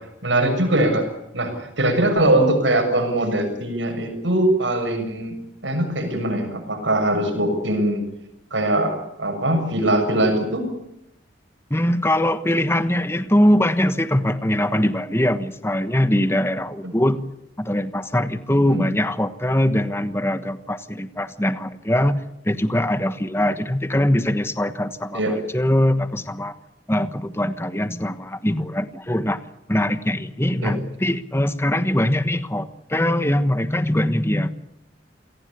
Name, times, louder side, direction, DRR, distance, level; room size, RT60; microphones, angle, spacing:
voice 1, 0.2-1.1 1.3-5.4 5.6-8.0 8.5-10.7 16.8-16.9 18.7-18.9 25.1-25.4 30.6-30.7, right 1 dB, 80° right, 6 dB, 6.9 m, -21 dB
voice 2, 11.7-17.2 17.6-26.5 26.9-29.4 29.7-34.5, left 1 dB, 15° left, 11 dB, 1.2 m, -22 dB
28.0 x 18.5 x 8.5 m, 0.83 s
head